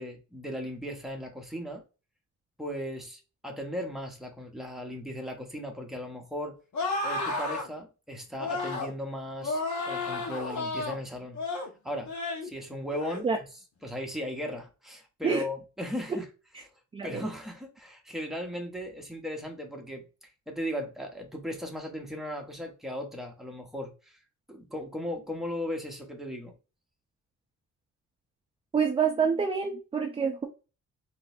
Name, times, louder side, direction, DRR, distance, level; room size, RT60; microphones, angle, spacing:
voice 1, 0.0-1.8 2.6-6.6 7.0-11.4 11.8-12.1 12.4-13.5 13.8-16.2 17.0-20.1 20.5-24.2 24.5-26.5, equal, ahead, 0.8 m, -37 dB
sound 1, 6.7-7.7 8.4-8.9 9.4-11.0 11.3-11.7 12.1-12.5 12.9-13.2, left 2 dB, 65° left, 1.1 m, -32 dB
voice 2, 16.9-17.2 28.7-30.5, right 6 dB, 20° right, 0.4 m, -27 dB
3.8 x 2.7 x 2.4 m
cardioid pair, 120°, 31 cm